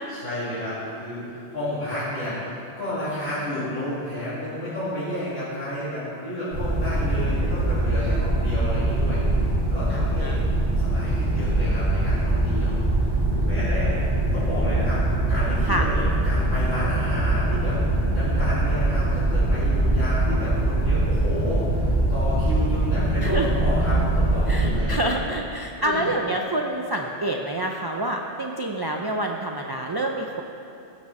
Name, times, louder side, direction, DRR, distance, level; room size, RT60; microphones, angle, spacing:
voice 1, 0.1-10.3 10.8-14.0 14.3-15.0 15.3-25.1 25.8-26.1, left 1 dB, 65° left, -13 dB, 3.1 m, -31 dB
sound 1, 6.5-24.8, right 1 dB, 65° right, 3.0 m, -23 dB
voice 2, 9.9-10.4 13.4-13.9 15.7-15.9 23.2-23.5 24.5-30.4, right 1 dB, 35° right, 1 dB, 0.4 m, -28 dB
15.5 x 6.1 x 4.2 m, 2.8 s
omnidirectional pair, 1.1 m